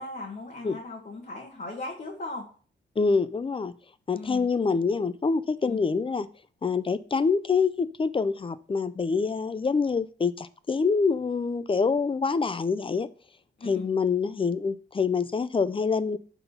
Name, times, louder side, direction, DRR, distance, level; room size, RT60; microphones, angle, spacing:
voice 1, 0.0-2.4 4.1-4.5 5.7-5.8 13.6-13.8, left 2 dB, 45° left, -1 dB, 1.5 m, -38 dB
voice 2, 3.0-3.7 4.1-6.3 6.6-13.1 13.6-16.2, left 5 dB, 25° left, 15 dB, 0.4 m, -26 dB
6.0 x 3.7 x 5.5 m, 0.41 s
cardioid pair, 95°, 20 cm